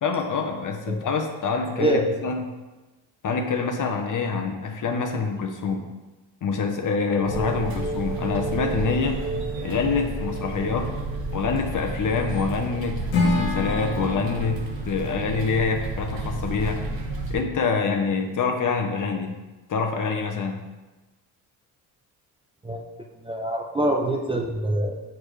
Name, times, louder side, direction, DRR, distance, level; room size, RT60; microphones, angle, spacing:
voice 1, 0.0-2.5 3.2-5.9 6.4-9.2 9.6-10.9 11.3-14.6 14.8-16.8 17.3-19.4 19.7-20.6, left 5 dB, 45° left, 4 dB, 0.9 m, -26 dB
sound 1, 7.1-11.8, right 2 dB, 5° left, 1.4 m, -34 dB
sound 2, 7.2-17.3, right 2 dB, 50° right, 1.2 m, -32 dB
Acoustic guitar / Strum, 13.1-16.3, left 3 dB, 85° left, 1.3 m, -29 dB
voice 2, 23.2-25.0, right 1 dB, 10° right, 0 dB, 0.6 m, -24 dB
6.5 x 4.7 x 3.2 m, 1.2 s
supercardioid pair, 70°, 45 cm